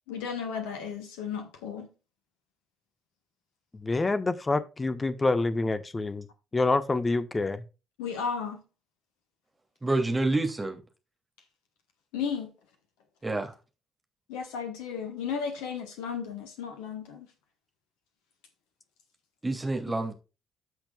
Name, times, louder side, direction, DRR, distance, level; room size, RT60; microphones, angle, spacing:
voice 1, 0.1-1.9 8.0-8.6 12.1-12.5 14.3-17.3, left 6 dB, 70° left, 1.2 m, -34 dB
voice 2, 3.7-6.3 6.5-7.6, left 3 dB, 25° left, 1.2 m, -27 dB
voice 3, 9.8-10.8 13.2-13.5 19.4-20.1, right 2 dB, 20° right, 2.7 m, -28 dB
14.5 x 5.9 x 2.3 m
figure-of-eight pair, 45°, 0 cm